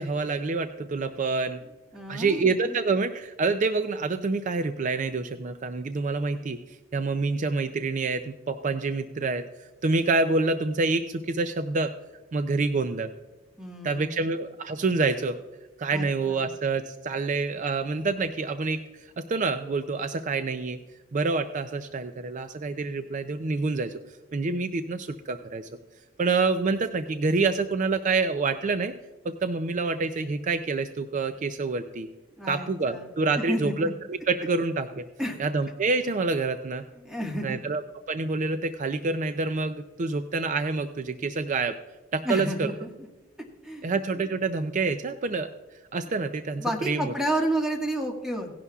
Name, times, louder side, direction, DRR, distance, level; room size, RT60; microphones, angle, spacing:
voice 1, 0.0-1.6 2.1-11.9 12.3-13.1 13.8-15.4 15.8-20.8 21.1-24.0 24.3-25.7 26.2-28.9 29.2-32.1 32.5-35.1 35.4-36.8 37.4-37.8 38.1-41.8 42.1-42.7 43.8-45.5 45.9-47.1, right 3 dB, 40° right, 9 dB, 0.4 m, -27 dB
voice 2, 1.9-2.8 13.6-14.2 15.9-16.5 32.4-33.1 33.5-33.7 35.2-35.4 36.9-37.6 42.2-42.9 43.6-43.9 44.1-44.2 46.6-48.5, right 1 dB, 5° right, 0 dB, 1.6 m, -31 dB
17.0 x 11.0 x 2.4 m, 1.1 s
head